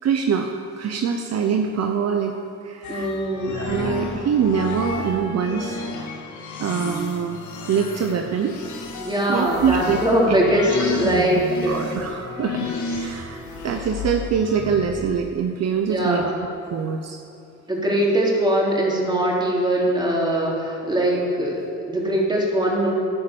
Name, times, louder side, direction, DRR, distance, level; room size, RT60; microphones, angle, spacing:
voice 1, 0.0-2.4 2.6-3.1 3.5-6.1 6.6-7.4 7.7-8.6 9.3-10.0 10.3-10.4 10.8-11.3 11.6-16.2 16.7-17.2, right 7 dB, 55° right, 4 dB, 0.9 m, -24 dB
sound 1, 2.8-15.2, left 4 dB, 75° left, 1.8 m, -32 dB
voice 2, 2.9-3.6 9.0-11.8 15.9-16.3 17.7-22.9, right 1 dB, 15° right, -4 dB, 3.6 m, -21 dB
11.0 x 10.5 x 7.1 m, 2.8 s
cardioid pair, 90°, 30 cm